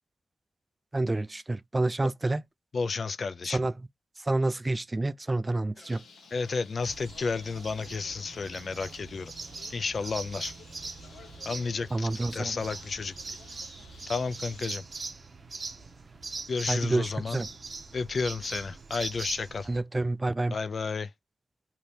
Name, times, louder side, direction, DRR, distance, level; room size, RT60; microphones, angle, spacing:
voice 1, 0.9-2.4 3.5-3.7 4.2-6.0 11.9-12.5 16.7-17.5 19.7-20.6, right 2 dB, 25° right, 0.3 m, -28 dB
voice 2, 2.7-3.6 6.3-9.3 9.7-10.5 11.5-13.4 14.1-14.8 16.5-17.4 17.9-19.7 20.5-21.1, left 4 dB, 55° left, 0.4 m, -32 dB
Bird, 5.8-14.8, left 4 dB, 80° left, 1.0 m, -53 dB
sound 1, 6.8-19.8, right 3 dB, 45° right, 0.7 m, -42 dB
2.8 x 2.6 x 3.2 m
cardioid pair, 60°, 0 cm